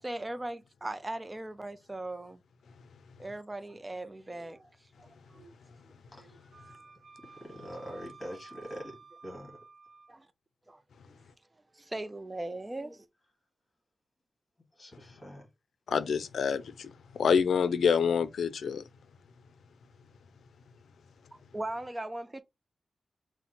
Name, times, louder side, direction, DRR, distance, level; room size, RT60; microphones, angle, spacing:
voice 1, 0.0-2.4 3.2-4.7 5.0-5.5 6.2-6.3 10.1-10.3 10.7-10.8 11.1-11.2 11.7-13.1 21.5-22.4, right 1 dB, 20° right, 0.5 m, -39 dB
voice 2, 6.1-6.5 7.2-9.0 9.2-9.6 14.7-15.5, equal, 25° left, 2.0 m, -44 dB
Wind instrument woodwind instrument, 6.5-10.2, right 4 dB, 50° right, 0.8 m, -53 dB
voice 3, 15.9-18.8, left 6 dB, 90° left, 0.4 m, -27 dB
4.1 x 2.1 x 4.1 m
wide cardioid pair, 95°, 0 cm